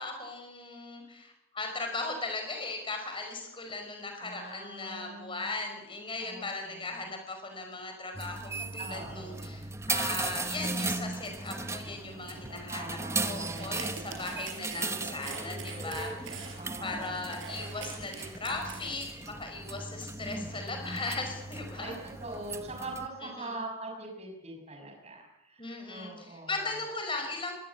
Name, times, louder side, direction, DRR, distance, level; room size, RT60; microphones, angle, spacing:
voice 1, 0.0-16.5 16.8-21.9 23.4-23.6 25.6-27.5, left 3 dB, 25° left, 4 dB, 5.3 m, -38 dB
voice 2, 4.2-5.5 6.2-7.0 8.8-9.7 12.5-14.5 16.6-17.1 21.7-21.9 22.2-26.7, right 2 dB, 30° right, 2 dB, 6.2 m, -43 dB
sound 1, 8.1-23.1, right 3 dB, 15° right, 0.9 m, -37 dB
sound 2, 13.4-19.1, right 5 dB, 60° right, 5.0 m, -43 dB
22.0 x 17.5 x 8.5 m, 0.93 s
head